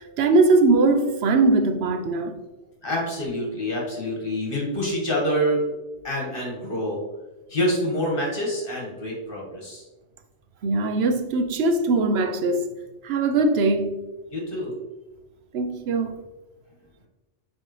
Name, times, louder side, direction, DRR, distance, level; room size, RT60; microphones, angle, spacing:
voice 1, 0.0-2.4 10.6-12.7 13.0-14.0 15.5-16.2, right 3 dB, 65° right, 0.9 m, -21 dB
voice 2, 2.8-5.6 6.0-7.0 7.5-9.9 14.3-14.7, equal, 50° left, 1.7 m, -26 dB
7.5 x 4.5 x 3.1 m
omnidirectional pair, 1.2 m